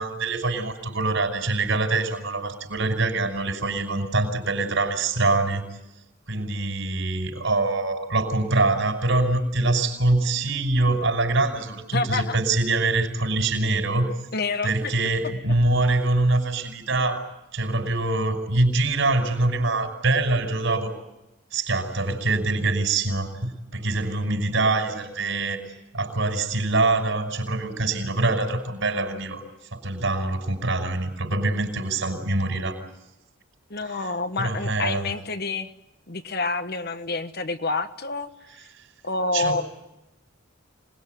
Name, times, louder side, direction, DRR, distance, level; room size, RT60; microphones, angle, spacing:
voice 1, 0.0-5.6 6.3-14.1 14.6-17.3 17.5-20.9 21.5-25.6 25.9-29.4 29.7-32.8 34.4-35.1 39.3-39.6, right 2 dB, 65° right, 5 dB, 5.7 m, -24 dB
voice 2, 11.9-12.4 14.3-14.9 33.7-35.7 36.1-38.3 39.0-39.6, left 3 dB, 50° left, 9 dB, 1.3 m, -28 dB
26.0 x 21.0 x 9.4 m, 0.97 s
head